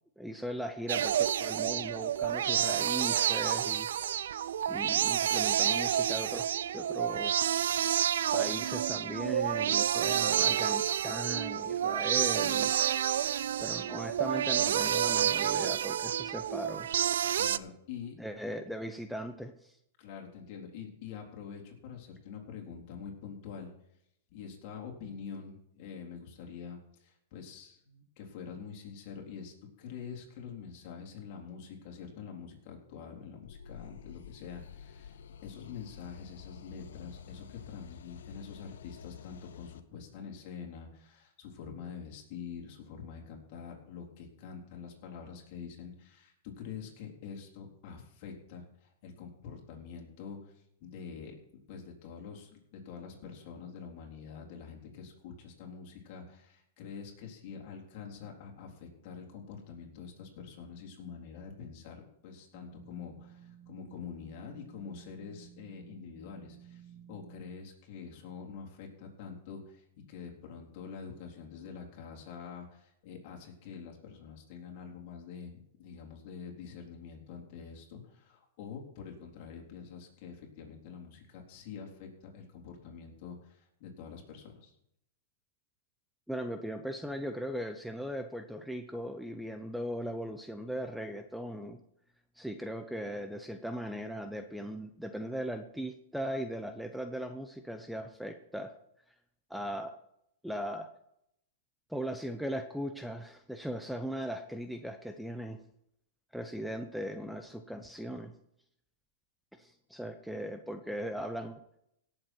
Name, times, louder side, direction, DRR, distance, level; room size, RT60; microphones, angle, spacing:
voice 1, 0.2-3.9 4.7-6.5 6.7-7.4 8.3-12.7 13.6-16.9 18.2-19.8 86.3-91.8 92.4-98.7 99.5-99.9 100.4-100.9 101.9-105.6 106.3-108.3 109.6-111.6, equal, ahead, 7 dB, 0.7 m, -38 dB
sound 1, 0.9-17.6, right 9 dB, 80° right, 0.4 m, -29 dB
voice 2, 17.3-18.2 20.0-23.7 24.3-51.4 51.7-84.7, left 6 dB, 50° left, 0 dB, 3.9 m, -46 dB
sound 2, 33.4-39.8, left 8 dB, 80° left, 0.9 m, -49 dB
sound 3, 62.5-67.5, right 10 dB, 55° right, 2.3 m, -54 dB
17.5 x 7.6 x 4.5 m, 0.76 s
hypercardioid pair, 140°, 0 cm